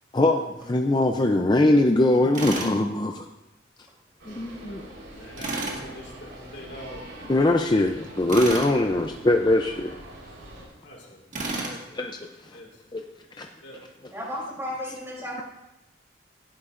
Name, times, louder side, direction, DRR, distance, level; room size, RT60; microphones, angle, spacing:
voice 1, 0.1-3.1 4.3-4.8 7.3-10.0 11.9-12.6 12.9-13.0 13.4-13.5, left 1 dB, 20° left, 4 dB, 0.5 m, -22 dB
Tools, 2.3-2.8 5.4-5.8 8.3-8.7 11.3-11.8, right 2 dB, 40° right, 2.0 m, -30 dB
sound 1, 4.2-10.6, right 1 dB, 85° right, 3.9 m, -44 dB
voice 2, 5.1-7.1 10.8-12.0 12.5-12.8 13.6-13.8, left 1 dB, 65° left, -3 dB, 2.0 m, -43 dB
voice 3, 14.1-15.4, left 1 dB, 15° right, -3 dB, 3.1 m, -33 dB
16.5 x 11.0 x 2.5 m, 0.94 s
head